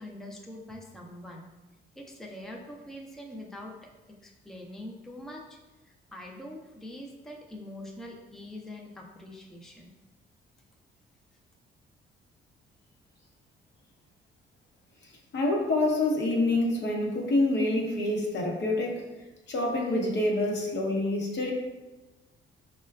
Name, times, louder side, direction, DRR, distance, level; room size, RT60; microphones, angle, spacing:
voice 1, 0.0-1.5 2.0-3.9 4.2-5.6 5.8-9.9, left 1 dB, ahead, -1 dB, 0.5 m, -44 dB
voice 2, 15.3-19.1 19.5-21.5, left 2 dB, 65° left, 0 dB, 0.9 m, -27 dB
5.4 x 2.2 x 2.3 m, 1.1 s
cardioid pair, 90°, 20 cm